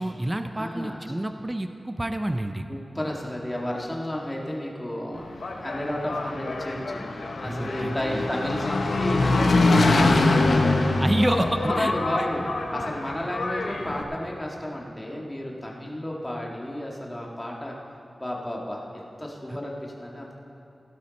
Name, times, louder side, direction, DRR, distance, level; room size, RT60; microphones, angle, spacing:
voice 1, 0.0-2.7 7.4-8.3 11.0-11.9 12.2-12.3 19.5-19.6, right 1 dB, 20° right, 7 dB, 0.5 m, -28 dB
voice 2, 0.5-1.0 2.7-7.1 7.4-10.8 11.2-11.4 11.6-12.4 12.7-17.7 18.2-20.3, left 1 dB, 15° left, -2 dB, 2.0 m, -32 dB
Engine, 5.2-14.0, left 2 dB, 90° left, 1.0 m, -24 dB
16.5 x 11.5 x 4.2 m, 3.0 s
wide cardioid pair, 100°, 0 cm